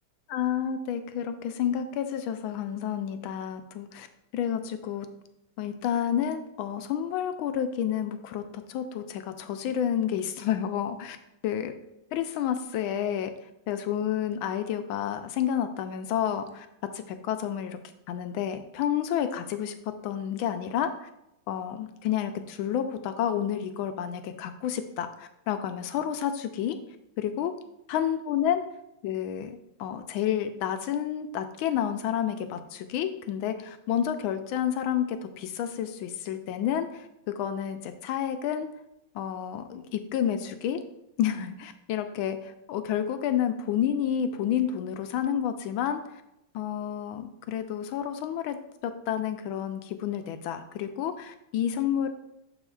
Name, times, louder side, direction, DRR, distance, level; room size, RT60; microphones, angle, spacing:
voice 1, 0.3-4.1 4.3-5.1 5.6-11.2 11.4-11.7 12.1-13.3 13.7-16.7 16.9-17.8 18.1-19.7 20.0-21.1 21.5-26.8 27.2-27.5 27.9-28.6 29.0-37.1 37.4-38.7 39.1-40.8 41.2-46.0 46.5-48.6 48.8-52.1, left 9 dB, 90° left, 8 dB, 1.4 m, -30 dB
11.0 x 4.4 x 2.4 m, 0.82 s
omnidirectional pair, 2.2 m